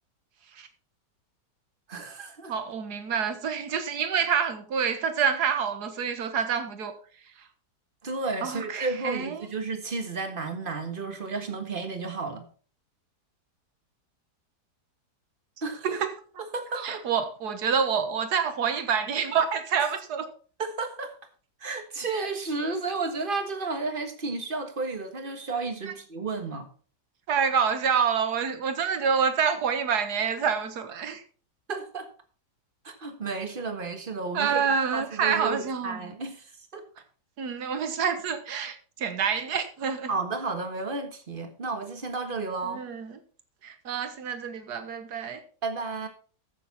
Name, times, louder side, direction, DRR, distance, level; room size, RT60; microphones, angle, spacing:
voice 1, 1.9-2.5 8.0-12.4 15.6-15.9 16.5-17.0 19.8-19.9 20.6-21.1 21.6-26.7 31.7-32.1 32.8-36.8 40.1-42.8 45.6-46.1, right 3 dB, 30° right, 1.6 m, -32 dB
voice 2, 2.5-6.9 7.4-7.5 8.4-9.5 15.8-16.1 16.8-20.3 27.3-31.2 34.3-36.1 37.4-40.1 42.6-43.2 43.6-45.4, right 6 dB, 65° right, 1.8 m, -27 dB
14.0 x 6.9 x 4.2 m
omnidirectional pair, 1.8 m